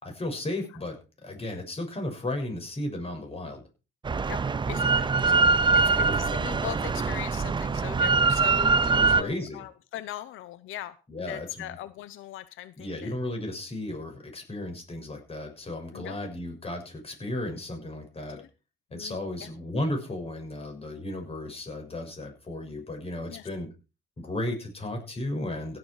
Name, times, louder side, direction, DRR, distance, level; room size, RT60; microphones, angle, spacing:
voice 1, 0.0-3.6 5.9-6.4 8.9-9.6 11.1-11.8 12.8-18.4 18.9-23.7 24.2-25.8, left 1 dB, 30° left, 3 dB, 6.7 m, -34 dB
Drill, 4.1-9.2, right 4 dB, 25° right, 0.5 m, -23 dB
voice 2, 4.3-5.5 5.7-13.1 15.9-16.2 18.4-18.5 18.9-19.5 23.3-23.5, left 13 dB, 85° left, 15 dB, 0.7 m, -40 dB
16.5 x 7.9 x 4.8 m, 0.32 s
cardioid pair, 90°, 20 cm